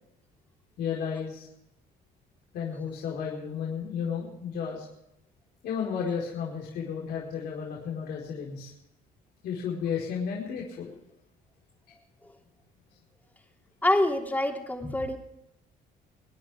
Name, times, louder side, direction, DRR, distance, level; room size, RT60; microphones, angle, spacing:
voice 1, 0.8-1.5 2.5-4.9 5.6-8.7 9.4-10.9, left 7 dB, 80° left, -4 dB, 4.8 m, -33 dB
voice 2, 13.8-15.2, left 1 dB, 10° left, 1 dB, 3.2 m, -26 dB
27.0 x 10.5 x 3.6 m, 0.83 s
cardioid pair, 110°, 17 cm